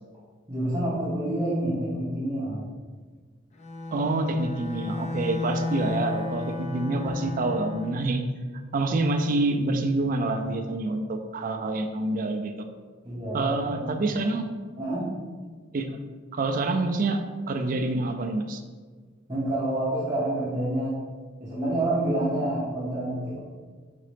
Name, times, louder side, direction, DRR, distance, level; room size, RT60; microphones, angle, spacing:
voice 1, 0.5-2.7 13.0-13.5 13.8-13.9 14.8-15.1 19.3-21.0 21.4-23.4, right 1 dB, 20° right, -11 dB, 0.9 m, -28 dB
Bowed string instrument, 3.5-8.1, left 3 dB, 35° left, 0.5 m, -33 dB
voice 2, 3.9-8.2 8.7-12.7 13.3-14.5 15.7-16.0 16.3-18.6, right 2 dB, 45° right, 5 dB, 0.4 m, -27 dB
4.2 x 3.7 x 3.4 m, 1.5 s
head